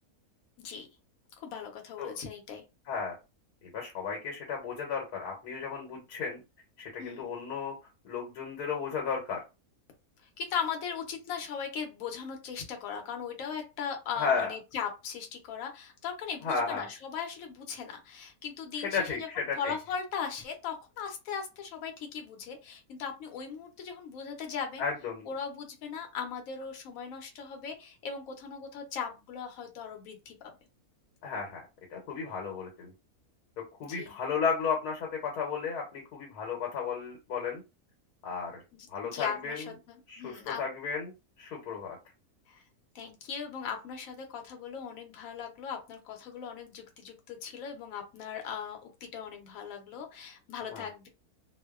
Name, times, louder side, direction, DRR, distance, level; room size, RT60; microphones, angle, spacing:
voice 1, 1.4-2.6 7.0-7.3 10.4-24.8 25.3-30.4 33.9-34.2 38.7-40.6 42.5-42.6 42.9-51.1, left 7 dB, 70° left, 3 dB, 1.0 m, -38 dB
voice 2, 2.9-3.2 3.7-6.4 6.8-7.7 8.0-9.4 14.1-14.5 16.4-16.9 18.8-19.7 24.8-25.3 31.2-31.6 31.9-32.9 33.8-37.6 38.2-38.6 38.9-39.6 40.1-41.1 41.4-42.0 50.7-50.8, left 5 dB, 85° left, -1 dB, 1.2 m, -33 dB
2.6 x 2.1 x 2.2 m, 0.27 s
omnidirectional pair, 1.6 m